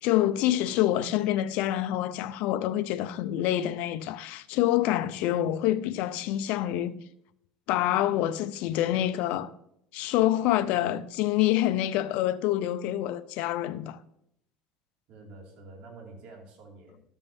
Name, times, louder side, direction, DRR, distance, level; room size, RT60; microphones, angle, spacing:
voice 1, 0.0-7.0 7.7-9.5 9.9-14.0, left 13 dB, 70° left, 0.6 m, -26 dB
voice 2, 15.1-17.1, right 3 dB, 65° right, 2.3 m, -48 dB
13.0 x 7.4 x 2.7 m
supercardioid pair, 90°, 2 cm